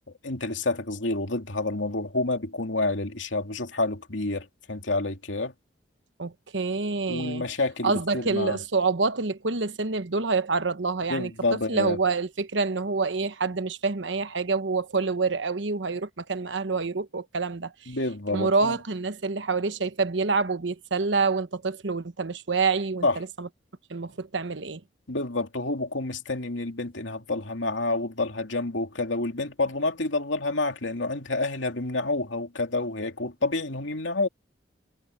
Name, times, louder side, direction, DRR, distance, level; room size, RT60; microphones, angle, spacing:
voice 1, 0.2-5.5 7.1-8.6 11.1-12.0 17.9-18.8 23.0-23.2 25.1-34.3, left 2 dB, 85° left, 2.8 m, -28 dB
voice 2, 6.2-7.4 7.8-17.7 18.3-23.5 23.9-24.8, right 4 dB, 75° right, 1.1 m, -27 dB
head